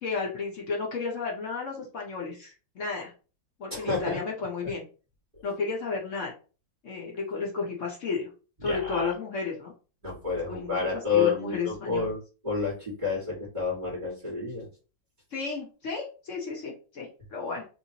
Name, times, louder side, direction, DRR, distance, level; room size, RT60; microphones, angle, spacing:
voice 1, 0.0-3.1 3.6-4.8 5.4-6.3 6.8-8.3 8.6-9.7 10.5-12.1 15.3-17.7, left 4 dB, 55° left, -2 dB, 0.9 m, -33 dB
voice 2, 3.7-4.2 8.6-9.1 10.0-14.7, left 5 dB, 25° right, -6 dB, 1.7 m, -29 dB
3.1 x 3.0 x 2.8 m, 0.36 s
omnidirectional pair, 2.2 m